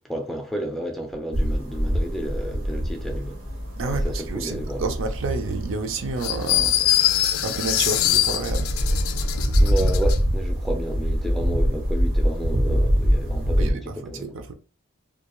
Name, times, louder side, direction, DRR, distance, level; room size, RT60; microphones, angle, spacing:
voice 1, 0.0-3.4 3.9-4.9 9.6-14.4, right 1 dB, ahead, 0.3 m, -31 dB
sound 1, 1.3-13.7, equal, 90° right, 1.1 m, -25 dB
voice 2, 3.8-6.8 7.4-8.7 13.5-14.5, right 3 dB, 65° right, 0.4 m, -29 dB
sound 2, 6.2-10.2, left 12 dB, 85° left, 0.3 m, -23 dB
2.3 x 2.2 x 2.9 m
head